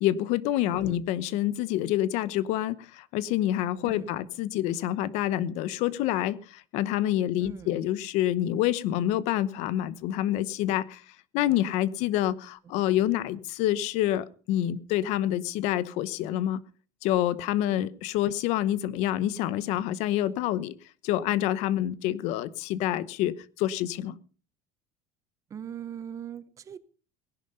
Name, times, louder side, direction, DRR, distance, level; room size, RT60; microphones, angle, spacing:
voice 1, 0.0-11.0 11.3-16.6 17.0-20.7 21.0-24.2, left 13 dB, 55° left, 0.9 m, -27 dB
voice 2, 0.6-1.0 3.8-4.1 7.4-7.7 25.5-26.8, right 8 dB, 25° right, 0.7 m, -40 dB
18.5 x 11.0 x 5.4 m
cardioid pair, 175°, 14 cm